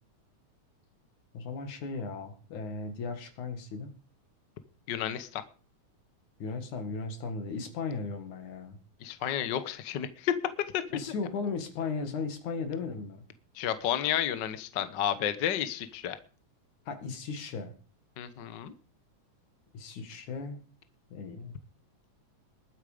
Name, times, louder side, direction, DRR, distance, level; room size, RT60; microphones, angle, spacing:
voice 1, 1.3-3.9 6.4-8.8 10.9-13.2 16.9-17.7 19.7-20.6 21.1-21.5, left 4 dB, 80° left, 8 dB, 3.6 m, -36 dB
voice 2, 4.9-5.4 9.0-10.3 10.7-10.8 13.6-16.2 18.2-18.7, left 10 dB, 55° left, 12 dB, 1.3 m, -31 dB
21.0 x 8.9 x 5.1 m, 0.38 s
omnidirectional pair, 3.4 m